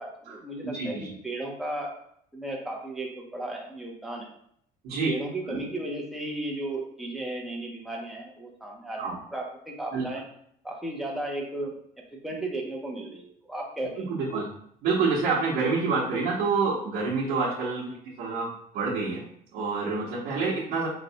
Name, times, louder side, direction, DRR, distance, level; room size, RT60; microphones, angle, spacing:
voice 1, 0.0-1.9 2.3-4.3 5.0-10.2 10.6-11.8 12.1-14.1 14.3-14.4 17.9-18.0, right 1 dB, ahead, -1 dB, 0.5 m, -35 dB
voice 2, 0.6-1.1 4.8-5.1 5.5-5.6 9.0-9.1 9.9-10.0 14.1-14.5 14.8-17.8 18.2-19.2 19.5-20.9, right 4 dB, 75° right, -8 dB, 0.9 m, -27 dB
4.0 x 2.1 x 2.7 m, 0.68 s
cardioid pair, 160°, 16 cm